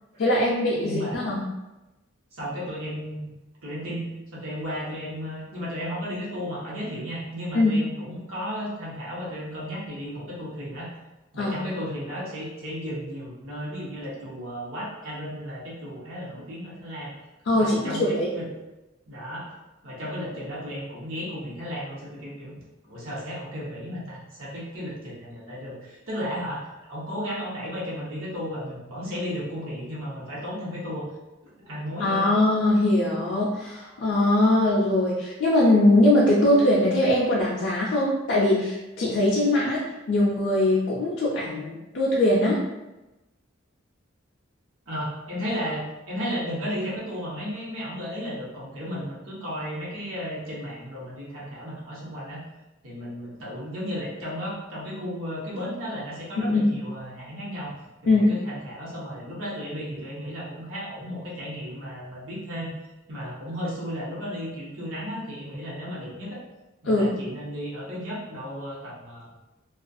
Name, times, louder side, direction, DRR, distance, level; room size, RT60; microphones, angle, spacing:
voice 1, 0.2-1.4 7.5-7.7 11.4-11.6 17.5-18.3 32.0-42.6 56.4-56.6 58.1-58.3 66.8-67.1, left 1 dB, 55° left, -5 dB, 0.4 m, -21 dB
voice 2, 0.7-1.2 2.3-3.3 3.6-10.9 11.3-17.1 17.5-18.5 19.1-19.5 19.8-22.5 22.8-31.0 31.6-32.3 44.9-52.4 52.8-57.7 58.0-62.7 63.1-66.4 66.8-69.3, equal, 75° right, -6 dB, 0.9 m, -34 dB
2.3 x 2.3 x 2.6 m, 1.0 s
head